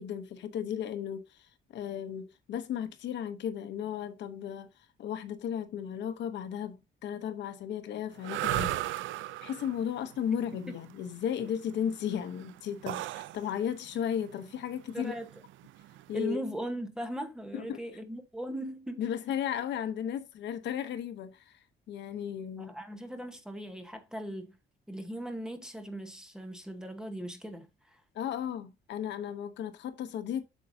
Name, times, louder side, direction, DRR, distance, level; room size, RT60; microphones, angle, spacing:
voice 1, 0.0-8.8 9.4-15.1 16.1-16.4 17.5-17.8 19.0-21.6 21.9-22.7 28.1-30.5, left 9 dB, 65° left, 0.9 m, -35 dB
sound 1, 8.2-16.2, right 14 dB, 80° right, 0.5 m, -37 dB
voice 2, 14.9-15.3 16.1-19.0 22.6-24.6 24.9-28.0, right 1 dB, 5° right, 1.1 m, -39 dB
8.4 x 6.7 x 2.7 m
cardioid pair, 175°, 20 cm